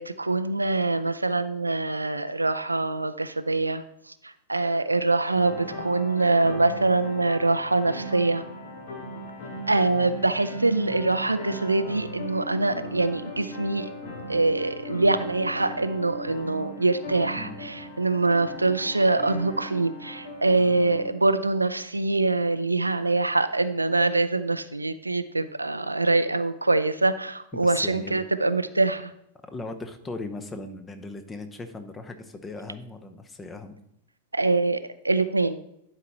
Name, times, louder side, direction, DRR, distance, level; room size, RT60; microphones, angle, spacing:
voice 1, 0.0-8.4 9.7-13.9 14.3-29.1 34.3-35.6, right 3 dB, 80° right, 12 dB, 0.4 m, -24 dB
sound 1, 5.4-21.1, equal, 50° left, 1.6 m, -38 dB
voice 2, 17.4-17.7 27.5-28.2 29.5-33.8, left 2 dB, 15° left, 9 dB, 0.9 m, -38 dB
11.0 x 4.7 x 4.2 m, 0.76 s
figure-of-eight pair, 90°, 0 cm